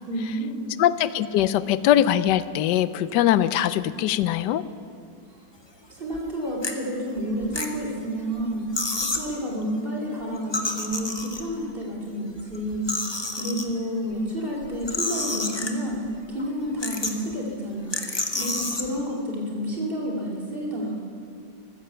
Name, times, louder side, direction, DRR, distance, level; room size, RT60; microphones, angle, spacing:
voice 1, 0.1-0.7 5.9-8.7 9.0-12.9 13.3-17.9 18.3-21.0, equal, 30° right, -3 dB, 3.1 m, -30 dB
voice 2, 0.8-4.6, left 11 dB, 75° left, 15 dB, 1.1 m, -22 dB
sound 1, 6.0-6.2 6.6-6.7 7.3-8.1 8.4-8.5 8.7-9.3 10.4-11.6 12.3-13.6 14.6-16.0 16.4-16.5 16.8-17.3 17.9-18.9, left 2 dB, 20° left, 0.7 m, -29 dB
14.5 x 13.5 x 6.9 m, 2.4 s
omnidirectional pair, 2.0 m